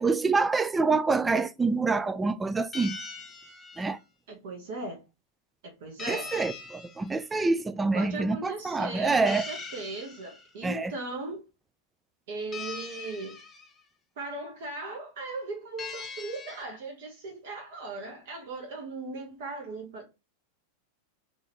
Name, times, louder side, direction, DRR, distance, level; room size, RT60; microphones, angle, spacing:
voice 1, 0.0-3.0 3.8-4.0 6.1-9.5 10.6-10.9, right 3 dB, 10° right, 0.3 m, -26 dB
sound 1, 2.7-3.9 6.0-7.1 9.3-10.5 12.5-13.7 15.8-16.6, left 4 dB, 20° left, 0.8 m, -41 dB
voice 2, 4.3-5.0 5.6-6.3 7.9-11.4 12.3-13.4 14.2-20.1, right 2 dB, 55° right, 1.0 m, -38 dB
4.0 x 2.6 x 3.0 m
figure-of-eight pair, 90°, 0 cm